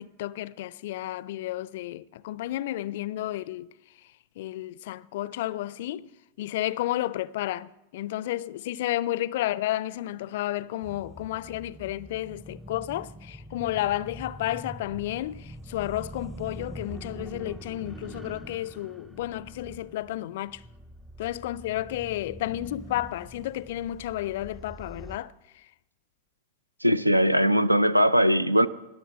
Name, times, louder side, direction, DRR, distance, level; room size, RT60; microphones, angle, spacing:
voice 1, 0.0-3.7 4.4-6.1 6.4-20.6 21.2-25.3, left 14 dB, 55° left, 0.4 m, -32 dB
sound 1, 10.8-25.2, right 1 dB, 5° right, 0.6 m, -44 dB
voice 2, 26.8-28.7, equal, 90° right, 0.5 m, -20 dB
20.0 x 7.1 x 6.9 m
figure-of-eight pair, 90°, 0 cm